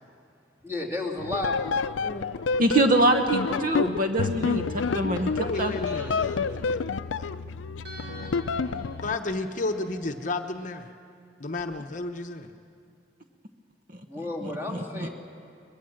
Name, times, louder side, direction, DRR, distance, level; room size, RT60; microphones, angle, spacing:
voice 1, 0.6-1.8 14.1-15.1, left 2 dB, 15° right, -1 dB, 2.8 m, -32 dB
sound 1, 1.2-9.2, left 4 dB, 85° left, 0.5 m, -29 dB
voice 2, 2.6-4.6 4.9-5.7 14.4-15.1, right 1 dB, 45° right, 5 dB, 1.1 m, -24 dB
sound 2, 4.5-7.4 7.8-11.6 11.9-12.0, right 1 dB, 80° right, 5.0 m, -47 dB
voice 3, 5.4-6.8 7.1-7.3 9.0-10.9 11.4-12.5, left 2 dB, 40° left, 5 dB, 0.9 m, -32 dB
23.0 x 20.5 x 7.7 m, 2.4 s
head